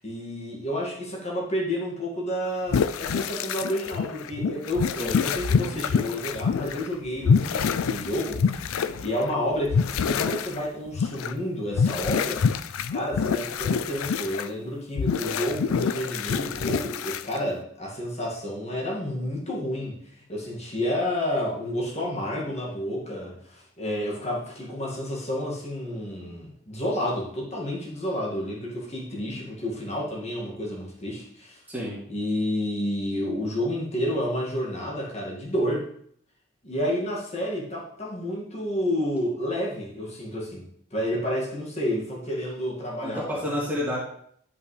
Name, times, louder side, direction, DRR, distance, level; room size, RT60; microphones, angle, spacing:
voice 1, 0.0-12.5 12.9-20.0 20.3-31.6 32.1-35.9 36.6-40.6 40.9-43.4, equal, 30° left, -4 dB, 2.0 m, -30 dB
sound 1, 2.7-6.9 7.2-9.3 9.7-10.6 10.9-11.3 11.7-14.5 15.0-17.5, left 6 dB, 70° left, 0.4 m, -26 dB
voice 2, 31.7-32.0 43.0-44.0, equal, 10° right, -7 dB, 2.2 m, -30 dB
11.0 x 5.3 x 3.3 m, 0.64 s
head